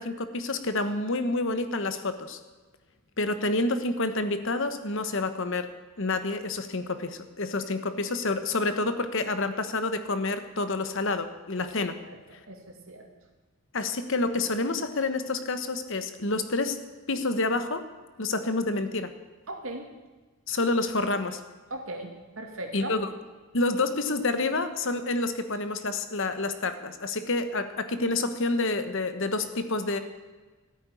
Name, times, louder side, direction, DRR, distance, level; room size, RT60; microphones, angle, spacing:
voice 1, 0.0-2.4 3.2-5.7 6.0-12.0 13.7-16.8 17.1-17.9 18.2-19.1 20.5-21.4 22.7-23.1 23.5-30.0, left 2 dB, 60° left, 10 dB, 1.2 m, -28 dB
voice 2, 12.5-13.1 19.5-19.9 21.7-22.1 22.4-22.9, right 1 dB, 70° right, 2 dB, 2.7 m, -38 dB
14.0 x 9.0 x 9.1 m, 1.3 s
head